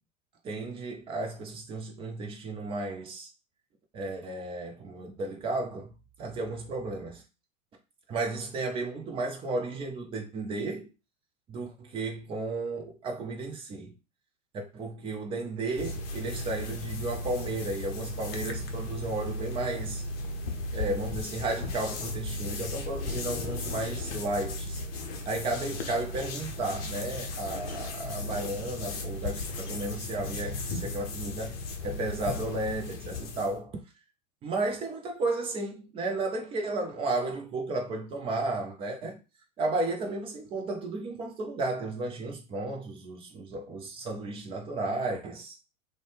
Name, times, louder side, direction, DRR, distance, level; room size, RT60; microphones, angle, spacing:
voice 1, 0.4-3.3 3.9-5.9 6.2-7.2 8.1-10.9 11.5-13.9 14.5-20.0 20.7-24.8 25.3-31.6 31.8-33.8 34.4-39.2 39.6-45.6, right 2 dB, 15° right, 0.4 m, -33 dB
sound 1, 15.8-33.6, left 2 dB, 45° left, 0.6 m, -36 dB
2.6 x 2.1 x 3.2 m
figure-of-eight pair, 90°, 40 cm